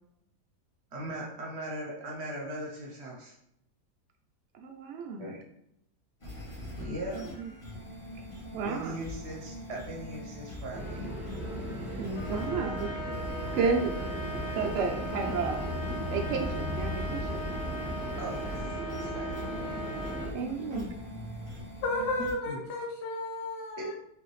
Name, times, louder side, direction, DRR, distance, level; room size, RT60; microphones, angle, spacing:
voice 1, 0.9-3.3 5.2-5.4 6.8-7.2 8.6-11.0 15.3-15.5 18.2-19.5 20.4-20.9 22.2-22.6 23.8-23.9, right 1 dB, 50° right, -2 dB, 0.9 m, -39 dB
voice 2, 4.5-5.2 7.1-7.5 8.5-8.9 12.0-12.9 13.5-14.0 14.5-15.6 16.1-17.5 20.3-20.9, right 5 dB, 75° right, 3 dB, 0.6 m, -32 dB
sound 1, 6.2-22.3, left 1 dB, 25° left, 0.9 m, -43 dB
sound 2, 10.7-20.3, equal, 20° right, 0.9 m, -37 dB
Trumpet, 12.1-20.3, right 2 dB, 45° left, 1.2 m, -39 dB
voice 3, 21.8-24.0, left 2 dB, 85° left, 0 dB, 1.4 m, -33 dB
4.9 x 2.7 x 3.1 m, 0.78 s
omnidirectional pair, 1.7 m